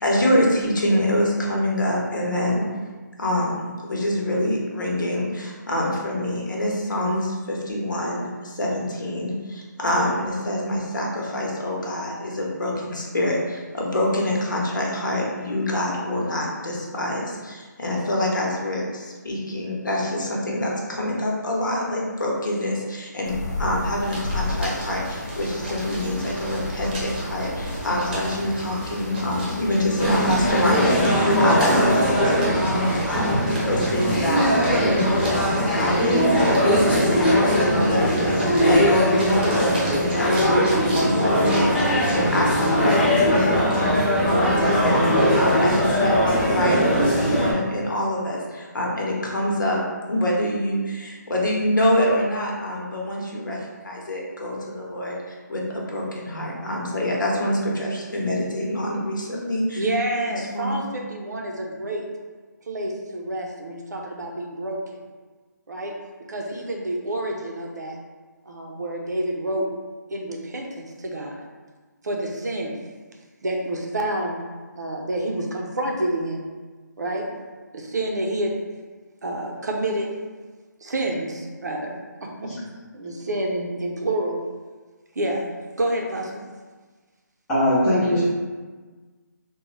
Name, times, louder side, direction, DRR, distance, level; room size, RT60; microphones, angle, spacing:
voice 1, 0.0-2.7 3.2-36.6 36.9-43.9 44.2-49.8 50.1-59.8 60.3-60.8, left 1 dB, 80° left, -2 dB, 1.0 m, -25 dB
sound 1, 23.2-30.9, left 2 dB, 60° left, 0.6 m, -33 dB
sound 2, 24.0-43.0, right 1 dB, 25° right, 0.8 m, -35 dB
sound 3, 30.0-47.5, equal, 30° left, 0.9 m, -20 dB
voice 2, 59.8-62.0 62.7-64.8 65.7-66.0 66.3-68.0 68.5-69.7 70.1-71.4 72.0-72.8 73.4-74.4 74.7-76.4 77.0-77.3 77.7-78.5 79.2-80.1 80.8-82.5 82.9-84.5 85.2-85.5 85.8-86.4, right 1 dB, 65° right, 1 dB, 0.6 m, -28 dB
voice 3, 87.5-88.2, left 1 dB, 5° left, -14 dB, 0.5 m, -20 dB
3.6 x 2.3 x 3.2 m, 1.4 s
hypercardioid pair, 175°, 10 cm